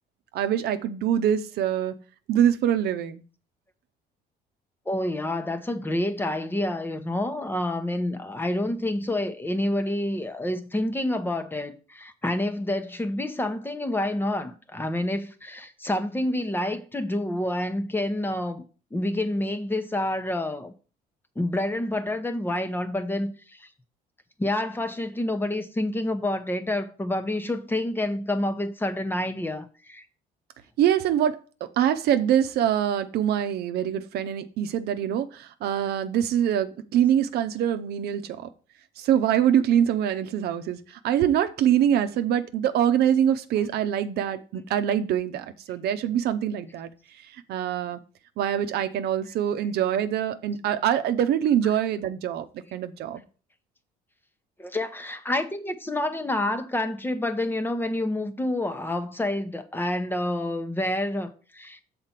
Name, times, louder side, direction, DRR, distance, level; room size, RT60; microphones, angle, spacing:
voice 1, 0.3-2.0 2.3-3.2 30.8-31.4 31.8-38.5 39.0-40.8 41.0-46.9 47.5-48.0 48.4-52.5 52.7-53.2, right 10 dB, 70° right, 0.8 m, -24 dB
voice 2, 4.9-18.6 18.9-20.7 21.4-23.7 24.4-30.0 49.6-49.7 51.6-51.8 54.6-61.8, left 1 dB, 10° left, 0.8 m, -28 dB
6.7 x 4.3 x 5.8 m
cardioid pair, 110°, 17 cm